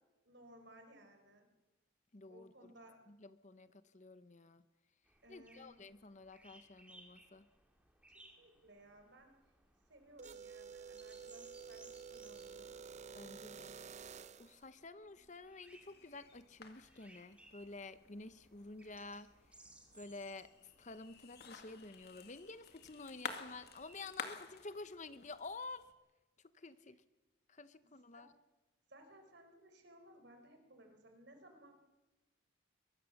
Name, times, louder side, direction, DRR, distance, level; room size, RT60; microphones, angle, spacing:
voice 1, 0.2-1.5 2.3-3.0 5.2-5.7 8.1-9.3 9.9-12.7 28.1-28.3 28.9-31.7, right 1 dB, 55° right, 6 dB, 4.5 m, -60 dB
voice 2, 2.1-2.5 3.1-4.6 5.3-7.5 13.1-13.7 14.4-19.3 19.9-20.5 20.8-25.9 26.5-27.0 27.5-28.3, left 3 dB, 35° left, 13 dB, 0.8 m, -50 dB
sound 1, 5.0-24.2, right 1 dB, 5° right, 2.6 m, -65 dB
sound 2, 10.2-14.6, right 6 dB, 35° right, 0.7 m, -51 dB
sound 3, 15.6-25.9, left 5 dB, 50° left, 2.1 m, -52 dB
23.0 x 21.0 x 7.2 m, 1.1 s
head